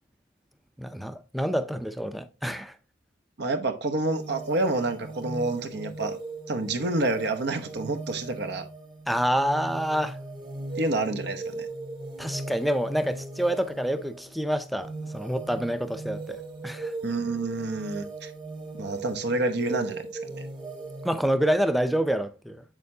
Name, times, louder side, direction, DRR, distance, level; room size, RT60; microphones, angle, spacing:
voice 1, 0.8-2.7 9.1-10.2 12.2-16.4 16.6-16.9 21.0-22.6, equal, ahead, 0.5 m, -27 dB
voice 2, 3.4-6.2 6.5-8.7 10.8-11.7 17.0-18.3 18.8-20.5, right 2 dB, 65° right, 0.9 m, -28 dB
sound 1, 4.0-21.2, right 3 dB, 25° right, 1.3 m, -38 dB
7.5 x 6.5 x 2.7 m
head